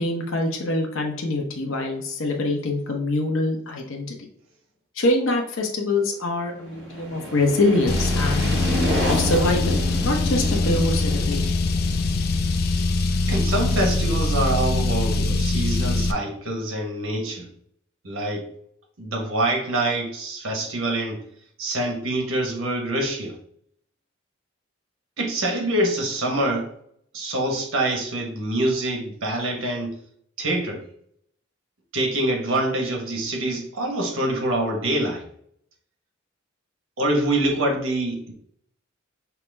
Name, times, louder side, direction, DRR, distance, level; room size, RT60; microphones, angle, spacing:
voice 1, 0.0-4.1 5.0-8.5 9.1-11.5, left 2 dB, 85° left, 2 dB, 0.8 m, -24 dB
sound 1, 6.5-13.2, equal, 65° right, 1.6 m, -30 dB
Car, 7.9-16.1, left 2 dB, 50° left, 0.4 m, -23 dB
voice 2, 13.3-17.5 18.0-18.4 19.0-21.2 21.6-23.3 25.2-26.7 27.1-29.9 30.4-30.8 31.9-35.2 37.0-38.3, right 1 dB, 90° right, 2 dB, 1.1 m, -25 dB
5.8 x 2.0 x 3.3 m, 0.66 s
head